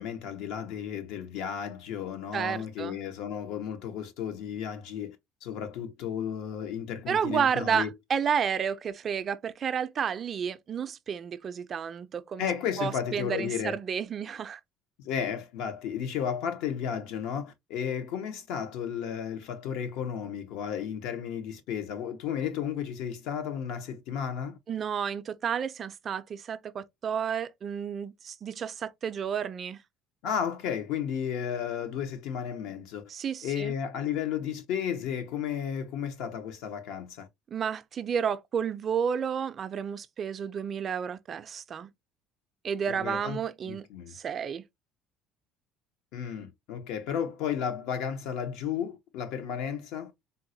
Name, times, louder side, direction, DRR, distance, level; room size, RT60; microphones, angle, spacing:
voice 1, 0.0-5.2 5.4-7.9 12.4-13.8 15.0-24.6 30.2-33.0 33.4-37.3 42.9-43.4 43.6-44.2 46.1-50.1, left 8 dB, 75° left, 0.7 m, -33 dB
voice 2, 2.3-3.0 7.1-12.5 12.8-14.6 24.7-29.8 33.1-33.7 37.5-41.9 42.6-43.9 44.1-44.6, right 7 dB, 40° right, 0.3 m, -31 dB
3.7 x 2.1 x 2.7 m
cardioid pair, 115°, 0 cm